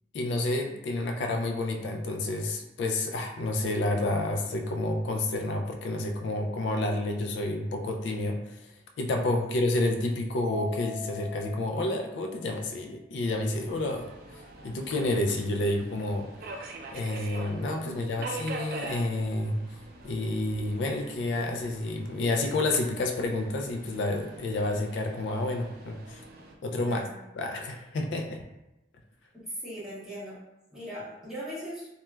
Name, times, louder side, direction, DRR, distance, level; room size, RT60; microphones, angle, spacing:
voice 1, 0.1-8.7 9.0-16.3 16.9-19.6 20.0-26.2 26.6-27.0 27.3-28.4, left 2 dB, 85° left, 3 dB, 0.3 m, -29 dB
voice 2, 9.1-9.5 17.8-18.3 26.8-27.2 29.5-30.4 30.7-31.9, equal, ahead, -12 dB, 1.2 m, -40 dB
Mallet percussion, 10.4-12.9, left 9 dB, 25° left, 0.5 m, -43 dB
Subway metro underground, 13.5-26.5, right 3 dB, 55° right, 0.3 m, -44 dB
3.0 x 2.2 x 2.2 m, 0.92 s
head